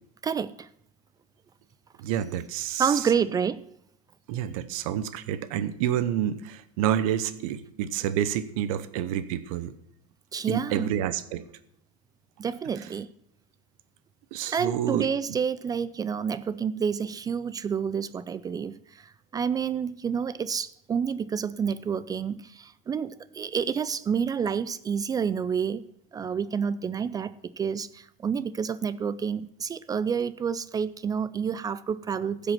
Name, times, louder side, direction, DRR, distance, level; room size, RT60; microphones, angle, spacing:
voice 1, 0.2-0.7 2.8-3.7 10.3-10.9 12.4-13.1 14.5-32.5, right 7 dB, 20° right, 15 dB, 0.3 m, -29 dB
voice 2, 2.0-3.0 4.3-9.7 10.5-11.4 14.3-15.1, right 10 dB, 75° right, 13 dB, 0.9 m, -28 dB
15.5 x 5.2 x 6.0 m, 0.73 s
supercardioid pair, 125°, 18 cm